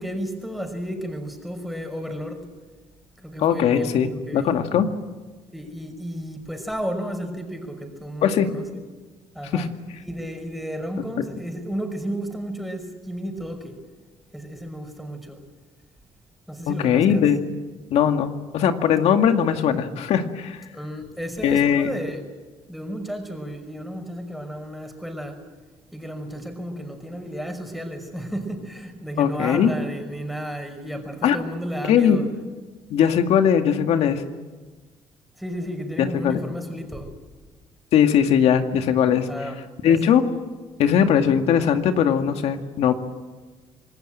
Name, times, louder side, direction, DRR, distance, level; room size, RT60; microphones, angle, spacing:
voice 1, 0.0-2.5 3.2-4.6 5.5-8.7 9.3-9.7 10.1-13.8 14.3-15.4 16.5-17.2 20.7-22.2 22.7-25.5 25.9-32.3 35.4-37.2 39.3-40.0, equal, ahead, 5 dB, 5.6 m, -33 dB
voice 2, 3.4-4.9 8.2-8.5 9.5-9.7 11.2-11.3 16.7-17.4 17.9-20.6 21.4-21.9 29.2-29.7 31.2-31.4 31.8-32.2 32.9-34.2 36.0-36.4 37.9-39.3 39.8-40.2 40.8-42.9, left 8 dB, 70° left, 6 dB, 2.1 m, -19 dB
26.5 x 19.0 x 9.1 m, 1.3 s
cardioid pair, 90°, 11 cm